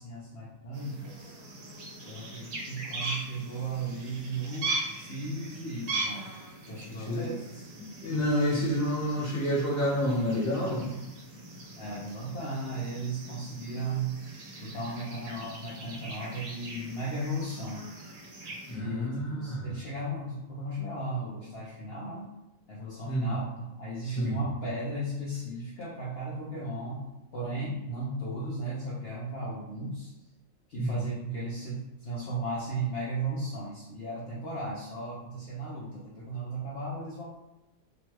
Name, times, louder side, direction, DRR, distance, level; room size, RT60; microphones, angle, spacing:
voice 1, 0.0-1.3 2.0-6.3 6.6-7.7 11.8-17.8 18.7-22.3 22.7-27.1 27.3-30.1 30.7-37.4, right 2 dB, 60° left, -6 dB, 0.7 m, -36 dB
sound 1, 0.7-18.7, right 2 dB, 80° right, 1.2 m, -40 dB
voice 2, 8.0-10.9 18.7-19.8 23.1-23.3 24.2-24.4 30.8-30.9, equal, 15° left, -6 dB, 0.8 m, -28 dB
2.9 x 2.2 x 3.1 m, 0.97 s
omnidirectional pair, 1.4 m